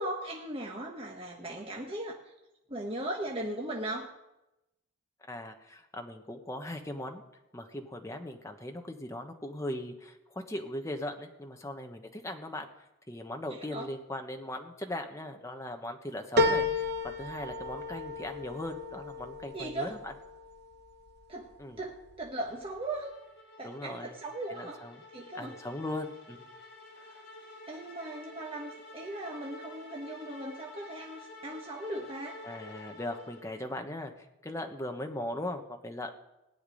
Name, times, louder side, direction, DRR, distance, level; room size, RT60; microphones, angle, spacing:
voice 1, 0.0-2.2 2.7-4.1 13.5-13.9 19.5-19.9 21.3-21.5 21.8-23.1 23.6-24.8 25.1-25.5 27.7-32.4, right 1 dB, 25° right, -1 dB, 1.2 m, -38 dB
voice 2, 5.2-7.2 7.5-12.7 13.1-20.1 21.6-21.8 23.6-24.1 24.5-25.0 25.3-26.4 27.1-27.2 32.4-36.1, left 1 dB, 15° left, 4 dB, 1.1 m, -39 dB
sound 1, 16.4-21.1 21.6-22.3 22.7-22.8, left 2 dB, 50° right, 1.0 m, -32 dB
sound 2, 22.5-33.8, left 2 dB, 65° left, 4.4 m, -50 dB
17.0 x 6.0 x 9.9 m, 0.95 s
head